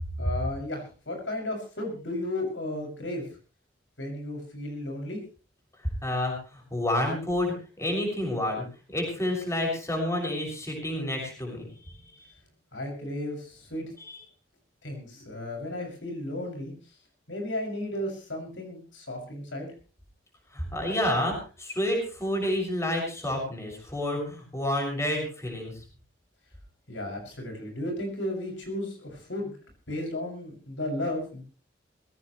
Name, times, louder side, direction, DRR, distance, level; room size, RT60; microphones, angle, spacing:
voice 1, 0.2-3.3 4.0-5.2 12.7-13.9 14.8-17.0 17.3-19.7 26.9-29.6 29.9-31.4, left 1 dB, 90° left, 2 dB, 7.1 m, -34 dB
voice 2, 5.8-12.3 14.0-14.2 20.5-25.8, left 1 dB, 15° left, 1 dB, 6.3 m, -29 dB
21.5 x 16.5 x 3.3 m, 0.36 s
head